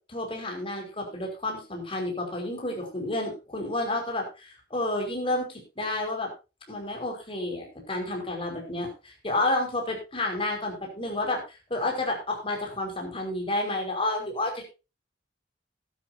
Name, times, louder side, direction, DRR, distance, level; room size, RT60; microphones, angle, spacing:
voice 1, 0.1-6.3 6.7-14.6, left 2 dB, 30° left, 1 dB, 5.1 m, -30 dB
14.5 x 12.0 x 2.8 m, 0.29 s
head